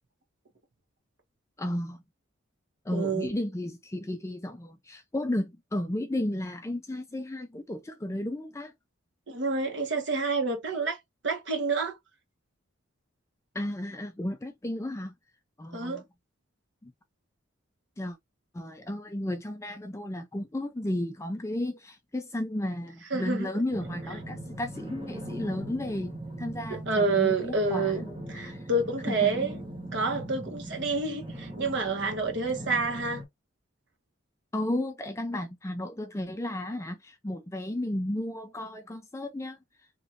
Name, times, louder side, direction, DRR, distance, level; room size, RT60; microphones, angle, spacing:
voice 1, 1.6-2.0 2.8-8.7 13.5-15.1 15.6-16.0 16.8-16.9 18.0-18.2 18.5-28.7 29.1-29.3 34.5-39.6, left 1 dB, 15° left, 0.3 m, -33 dB
voice 2, 2.9-3.3 9.3-11.0 11.2-11.9 15.7-16.0 23.1-23.5 26.9-28.0 28.3-29.5 29.9-33.2, right 3 dB, 55° right, 1.1 m, -28 dB
sound 1, 23.7-33.2, right 1 dB, 25° right, 0.8 m, -40 dB
3.0 x 2.5 x 2.7 m
head